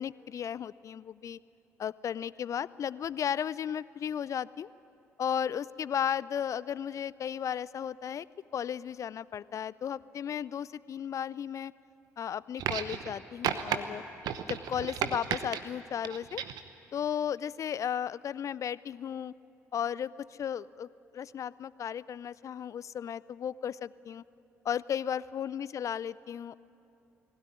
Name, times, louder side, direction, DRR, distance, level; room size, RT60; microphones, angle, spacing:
voice 1, 0.0-1.4 1.8-4.7 5.2-8.3 8.5-11.7 12.2-14.0 14.4-16.4 16.9-19.3 19.7-24.2 24.6-26.6, left 8 dB, 45° left, 20 dB, 0.5 m, -35 dB
sound 1, 12.6-13.1 13.4-13.8 14.2-15.6 16.0-16.7 17.7-17.8, right 9 dB, 65° right, 1.0 m, -33 dB
20.0 x 16.5 x 9.9 m, 2.8 s
hypercardioid pair, 50°, 7 cm